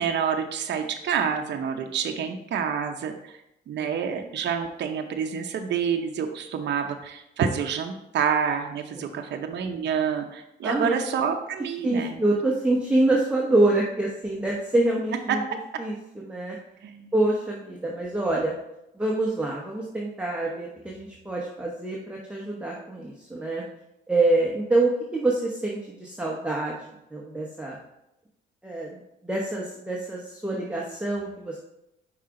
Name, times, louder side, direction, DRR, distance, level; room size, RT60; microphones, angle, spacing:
voice 1, 0.0-3.4 3.7-12.2 15.5-15.6 16.8-17.1, right 7 dB, 60° right, 4 dB, 0.7 m, -28 dB
voice 2, 10.6-10.9 11.8-15.4 15.8-16.6 17.1-18.5 19.0-23.6 24.1-27.8 28.6-31.6, right 2 dB, 5° right, -3 dB, 1.0 m, -26 dB
5.6 x 4.8 x 3.7 m, 0.85 s
cardioid pair, 90°, 20 cm